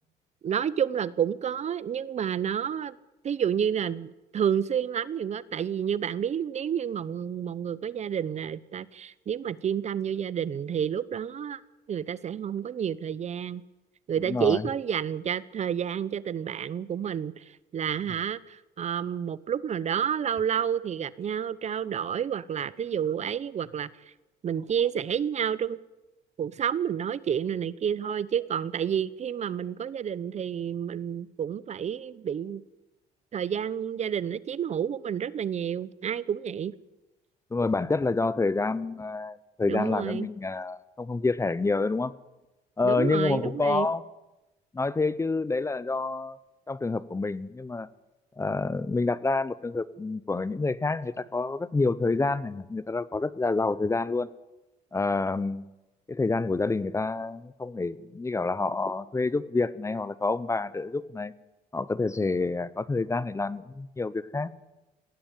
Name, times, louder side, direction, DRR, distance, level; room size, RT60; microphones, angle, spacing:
voice 1, 0.4-3.0 3.2-11.6 11.9-13.6 14.1-17.4 17.7-23.9 24.4-25.8 26.4-32.6 33.3-36.7 39.7-40.3 42.8-43.9, right 8 dB, 40° right, 19 dB, 0.8 m, -29 dB
voice 2, 14.3-14.6 37.5-42.1 42.8-44.0 44.7-46.4 46.7-47.9 48.4-54.3 54.9-55.7 56.1-61.3 61.7-64.5, left 3 dB, 15° left, 18 dB, 0.9 m, -28 dB
19.5 x 16.5 x 9.0 m, 1.0 s
cardioid pair, 110°, 17 cm